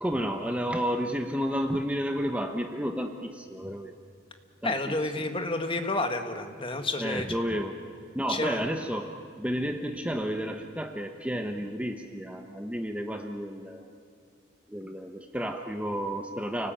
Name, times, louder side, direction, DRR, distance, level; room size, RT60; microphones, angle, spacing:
voice 1, 0.0-3.9 4.6-5.3 7.0-7.8 8.1-13.9 14.7-16.7, equal, 5° right, 5 dB, 1.0 m, -31 dB
voice 2, 4.6-7.2 8.3-8.6, left 2 dB, 25° left, 6 dB, 1.7 m, -30 dB
29.5 x 19.0 x 9.0 m, 2.5 s
head